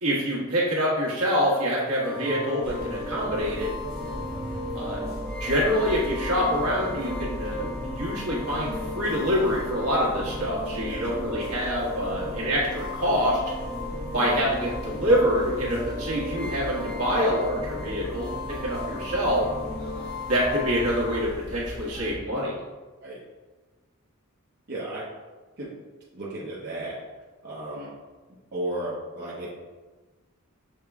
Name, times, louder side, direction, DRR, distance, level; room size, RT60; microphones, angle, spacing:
voice 1, 0.0-3.7 4.7-5.0 5.4-13.4 14.1-19.5 20.3-22.5, equal, 75° right, -6 dB, 1.4 m, -26 dB
sound 1, 2.0-21.2, left 1 dB, 5° left, 0.7 m, -36 dB
sound 2, 2.6-22.1, left 1 dB, 65° left, 1.3 m, -39 dB
voice 2, 24.7-25.1 25.6-25.7 26.1-27.0 27.4-27.9 28.5-29.5, right 1 dB, 50° right, -8 dB, 0.8 m, -34 dB
6.6 x 2.2 x 3.5 m, 1.3 s
head